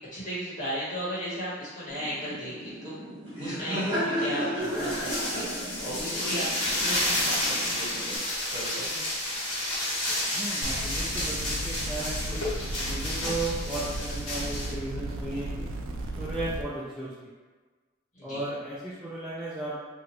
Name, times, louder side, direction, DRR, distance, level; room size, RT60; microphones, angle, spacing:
voice 1, 0.1-2.9 3.4-8.2 8.5-9.0 18.1-18.4, equal, 40° left, -9 dB, 1.3 m, -35 dB
Laughter, 1.9-8.2, equal, 30° right, 1.2 m, -34 dB
sound 1, 4.6-14.7, left 1 dB, 65° left, 1.4 m, -31 dB
voice 2, 10.3-12.5 12.8-15.7 16.2-17.1 18.2-19.8, right 2 dB, ahead, -9 dB, 0.4 m, -35 dB
sound 2, 10.6-16.6, right 1 dB, 75° right, 0.3 m, -35 dB
2.9 x 2.3 x 3.0 m, 1.3 s
head